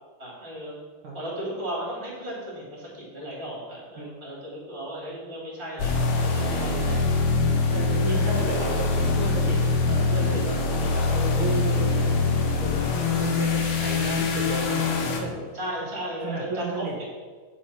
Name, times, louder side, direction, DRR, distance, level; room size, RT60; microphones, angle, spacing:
voice 1, 0.2-0.8 1.1-6.9 15.5-17.0, right 1 dB, 20° right, -4 dB, 2.1 m, -35 dB
sound 1, 5.8-15.2, left 3 dB, 75° left, 1.6 m, -24 dB
voice 2, 6.3-7.1 7.7-12.1 12.6-15.4 16.2-17.0, right 2 dB, 80° right, -4 dB, 1.1 m, -33 dB
10.0 x 5.1 x 5.6 m, 1.5 s
omnidirectional pair, 4.9 m